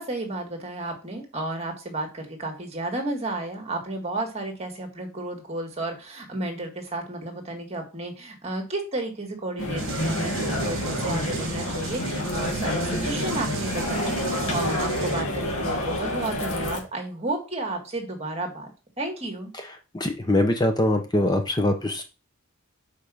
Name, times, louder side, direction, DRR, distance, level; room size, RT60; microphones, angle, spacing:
voice 1, 0.0-18.7 19.0-19.5, right 2 dB, 30° right, 4 dB, 1.8 m, -32 dB
sound 1, 9.6-16.8, left 1 dB, 90° left, 1.8 m, -28 dB
sound 2, 9.8-15.2, right 3 dB, 65° right, 1.1 m, -34 dB
voice 2, 19.9-22.0, left 1 dB, 20° left, 5 dB, 0.8 m, -23 dB
5.3 x 5.0 x 6.2 m, 0.31 s
head